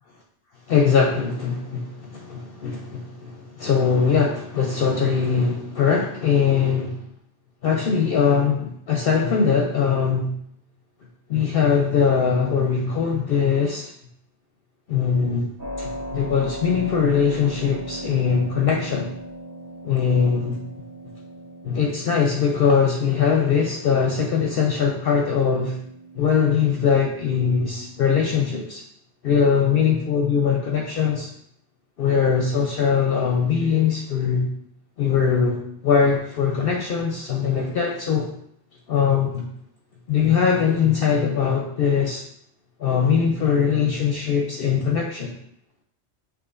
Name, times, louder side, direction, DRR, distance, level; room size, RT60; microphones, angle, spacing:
voice 1, 0.7-7.0 7.6-10.3 11.3-13.9 14.9-15.5 15.8-19.1 19.8-20.6 21.6-25.8 26.2-28.8 29.2-31.3 32.0-34.5 35.0-38.3 38.9-39.5 40.1-42.2 42.8-45.3, left 6 dB, 60° left, 0 dB, 0.7 m, -21 dB
Keyboard (musical), 15.6-28.1, right 1 dB, 20° right, 0.8 m, -38 dB
6.0 x 3.0 x 2.5 m, 0.69 s
omnidirectional pair, 1.2 m